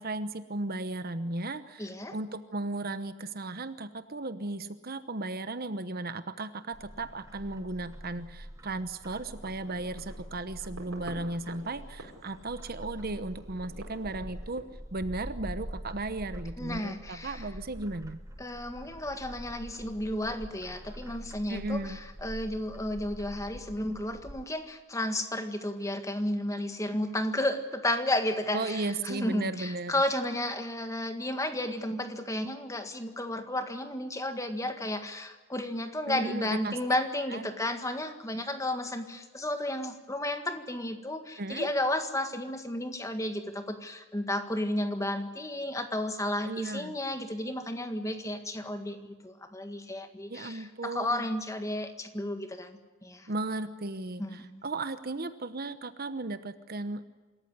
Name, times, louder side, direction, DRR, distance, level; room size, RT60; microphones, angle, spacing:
voice 1, 0.0-18.2 21.5-22.0 28.5-30.0 36.1-36.7 37.3-37.5 41.4-41.7 46.4-46.9 50.3-51.3 53.3-57.0, right 2 dB, 45° right, 12 dB, 1.0 m, -35 dB
voice 2, 1.8-2.2 16.6-17.5 18.4-53.3 54.2-54.6, left 1 dB, 15° left, 7 dB, 1.7 m, -33 dB
Bird, 6.7-24.5, equal, 15° right, 1.1 m, -45 dB
sound 1, 9.2-14.6, right 1 dB, 80° right, 4.9 m, -50 dB
25.5 x 14.0 x 9.8 m, 1.3 s
head